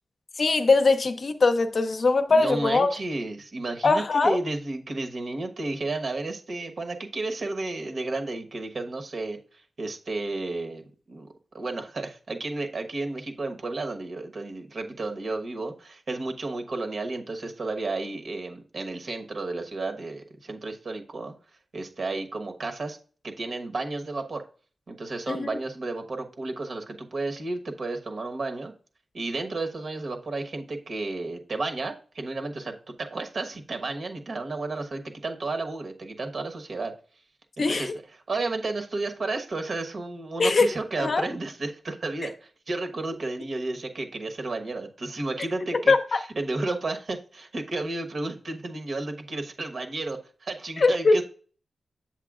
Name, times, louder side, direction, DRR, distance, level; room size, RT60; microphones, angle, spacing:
voice 1, 0.4-2.9 3.8-4.4 25.3-25.5 37.6-37.9 40.4-40.7 41.0-41.3 45.9-46.2 50.8-51.2, left 3 dB, 50° left, 0.6 m, -21 dB
voice 2, 2.3-11.3 11.5-21.3 21.7-23.0 23.2-24.4 24.9-28.7 29.1-36.9 37.6-37.9 38.3-51.2, right 2 dB, 55° right, 1.1 m, -32 dB
7.9 x 7.5 x 2.4 m
wide cardioid pair, 115°, 0 cm